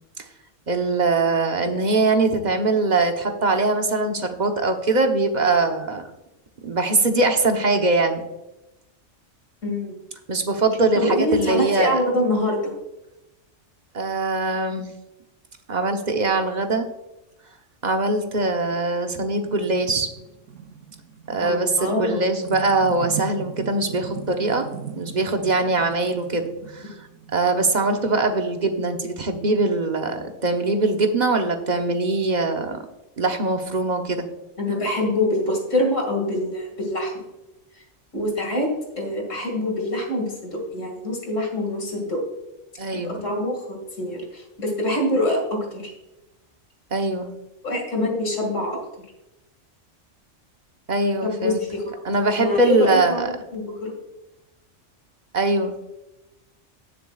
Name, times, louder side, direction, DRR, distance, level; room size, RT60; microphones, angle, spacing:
voice 1, 0.7-6.1 6.6-8.2 10.3-12.0 13.9-14.9 15.7-16.9 17.8-20.1 21.3-24.7 24.9-26.9 27.3-32.9 33.2-34.3 42.8-43.2 46.9-47.3 50.9-51.6 52.0-53.3 55.3-55.8, right 3 dB, 40° right, 5 dB, 1.1 m, -22 dB
voice 2, 9.6-9.9 10.9-12.7 21.4-22.2 34.6-37.2 38.1-38.7 39.0-42.2 42.9-45.9 47.6-48.8 51.2-51.8 52.3-53.2 53.5-54.0, left 1 dB, 85° left, 1 dB, 2.7 m, -25 dB
sound 1, 18.7-28.8, right 7 dB, 85° right, 1.0 m, -38 dB
18.0 x 6.7 x 2.4 m, 0.94 s
omnidirectional pair, 1.3 m